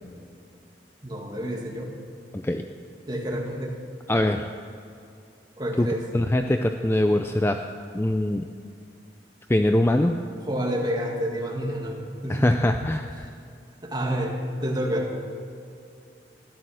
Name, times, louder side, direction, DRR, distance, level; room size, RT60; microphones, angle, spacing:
voice 1, 1.0-1.9 3.1-3.8 5.6-6.0 10.5-12.6 13.8-15.1, equal, 25° right, -1 dB, 1.9 m, -29 dB
voice 2, 4.1-4.5 5.8-5.9 6.1-7.6 7.9-8.4 9.5-10.2 12.3-13.3, left 1 dB, 15° left, 6 dB, 0.4 m, -22 dB
13.5 x 11.5 x 6.4 m, 2.5 s
head